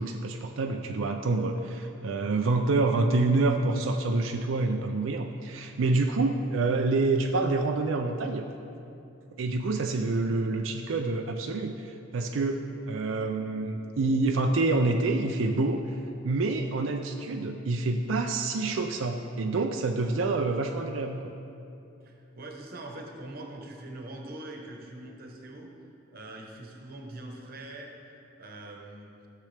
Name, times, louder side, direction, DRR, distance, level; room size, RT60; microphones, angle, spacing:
voice 1, 0.0-8.4 9.4-15.8 16.2-21.2, right 3 dB, 90° right, 4 dB, 0.4 m, -27 dB
voice 2, 22.0-25.7 26.1-27.9 28.4-29.1, right 1 dB, 50° right, 1 dB, 1.1 m, -43 dB
13.5 x 6.7 x 3.4 m, 2.7 s
head